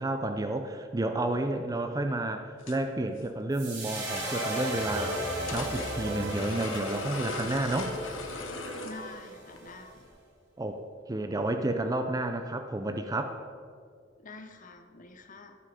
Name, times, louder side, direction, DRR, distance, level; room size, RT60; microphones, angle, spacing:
voice 1, 0.0-5.2 5.5-7.9 10.6-10.8 11.1-13.4, right 2 dB, 20° right, 6 dB, 0.4 m, -31 dB
sound 1, 2.6-2.8 3.1-3.3 4.4-4.6 5.5-9.1 9.5-9.6 10.0-10.1, left 3 dB, 80° left, 1.0 m, -39 dB
sound 2, 3.5-9.8, right 1 dB, 70° right, 3.0 m, -36 dB
sound 3, 4.9-9.1, right 1 dB, 85° right, 1.3 m, -41 dB
voice 2, 8.8-10.1 14.2-15.6, left 3 dB, 45° left, 6 dB, 0.8 m, -47 dB
14.5 x 5.4 x 5.0 m, 2.2 s
head